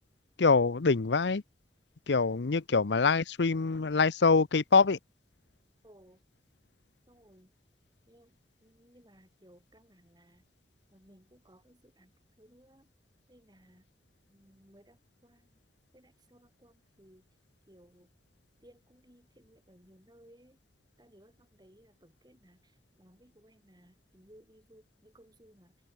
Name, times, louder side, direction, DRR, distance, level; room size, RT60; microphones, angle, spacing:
voice 1, 0.4-1.4 2.1-5.0, left 4 dB, 75° left, 0.7 m, -25 dB
voice 2, 5.8-6.2 7.1-7.5 8.1-10.5 10.9-12.9 13.3-13.9 14.3-15.6 15.9-17.3 17.7-18.1 18.6-20.6 21.0-25.8, equal, 25° right, 7.5 m, -61 dB
head